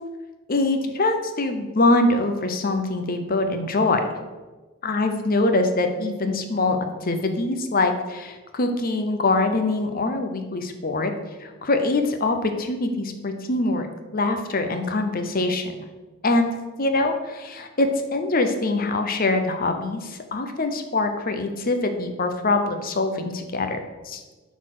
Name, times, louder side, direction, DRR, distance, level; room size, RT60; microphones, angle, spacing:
voice 1, 0.5-4.1 4.8-11.1 11.4-13.9 14.1-15.7 16.2-16.5 16.8-23.8 24.0-24.2, left 2 dB, 40° left, 7 dB, 0.7 m, -23 dB
8.0 x 4.1 x 6.5 m, 1.2 s
head